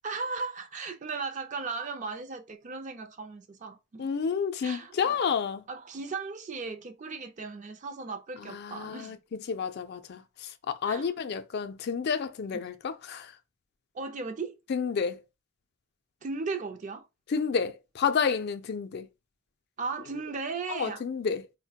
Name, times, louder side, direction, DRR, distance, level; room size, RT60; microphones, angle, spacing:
voice 1, 0.0-4.1 4.6-5.2 5.7-9.1 10.9-11.1 12.5-12.6 13.9-14.6 16.2-17.1 19.8-21.0, right 4 dB, 40° right, 0.5 m, -36 dB
voice 2, 4.0-5.6 8.4-13.3 14.7-15.2 17.3-19.1 20.7-21.5, left 6 dB, 55° left, 0.4 m, -30 dB
4.2 x 2.1 x 2.7 m
head